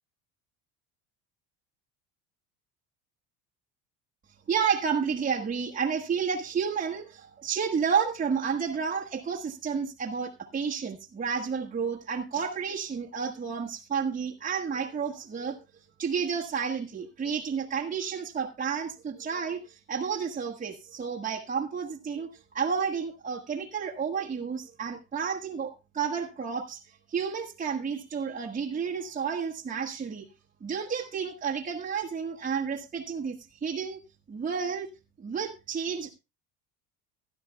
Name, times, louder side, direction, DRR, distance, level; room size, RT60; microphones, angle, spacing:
voice 1, 4.5-15.6 16.0-26.8 27.1-30.3 30.6-34.0 34.3-34.9 35.2-36.1, right 6 dB, 20° right, -2 dB, 1.3 m, -31 dB
16.5 x 11.5 x 2.2 m, 0.26 s
supercardioid pair, 110°, 39 cm